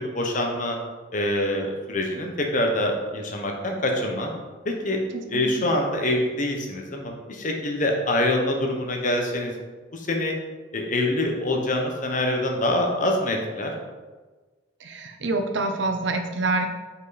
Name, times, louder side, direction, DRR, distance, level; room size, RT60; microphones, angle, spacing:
voice 1, 0.1-0.8 1.1-4.3 4.6-5.0 5.3-9.5 9.9-10.3 10.7-13.7, left 1 dB, 45° left, 2 dB, 1.0 m, -25 dB
voice 2, 5.1-5.7 14.8-16.7, right 2 dB, 75° right, 5 dB, 0.7 m, -27 dB
5.2 x 4.9 x 4.1 m, 1.3 s
head